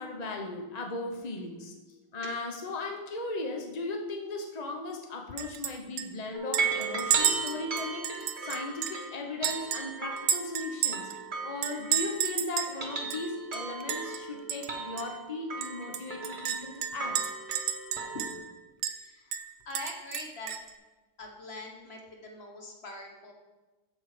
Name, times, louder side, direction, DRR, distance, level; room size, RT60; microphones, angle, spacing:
voice 1, 0.0-1.7 2.1-11.1 11.4-17.2, left 3 dB, 60° left, 2 dB, 0.4 m, -37 dB
Chink clink, 5.4-5.7 6.0-6.1 6.5-9.0 9.4-11.2 11.6-12.8 13.1-13.2 13.5-14.2 14.5-14.7 15.0-15.1 15.6-18.5 18.8-19.0 19.3-20.7, right 9 dB, 80° right, 1.4 m, -32 dB
sound 1, 6.3-12.3 12.6-18.4, right 4 dB, 35° right, 0.8 m, -37 dB
voice 2, 19.0-20.8 21.2-23.3, left 2 dB, 35° left, 1 dB, 1.2 m, -43 dB
14.0 x 4.6 x 4.9 m, 1.2 s
omnidirectional pair, 2.1 m